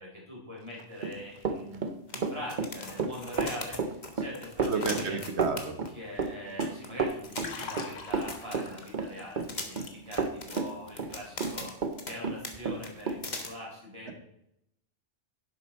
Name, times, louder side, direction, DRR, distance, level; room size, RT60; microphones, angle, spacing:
voice 1, 0.0-5.2 5.9-9.4 9.7-11.7 12.0-14.1, equal, 20° right, -5 dB, 4.5 m, -43 dB
Run, 0.8-12.0 12.2-13.2, right 4 dB, 45° right, 0.9 m, -31 dB
sound 1, 1.1-1.2 1.4-1.5 2.1-5.9 6.2-6.3 6.6-6.9 7.2-9.1 9.5-12.2 12.4-12.6 12.8-13.5, left 3 dB, 35° left, 1.3 m, -40 dB
voice 2, 4.7-5.8, right 4 dB, 60° right, 7 dB, 1.4 m, -31 dB
Liquid, 7.1-10.4 10.7-11.0, left 5 dB, 80° left, 1.5 m, -44 dB
11.0 x 7.7 x 4.3 m, 0.79 s
omnidirectional pair, 1.3 m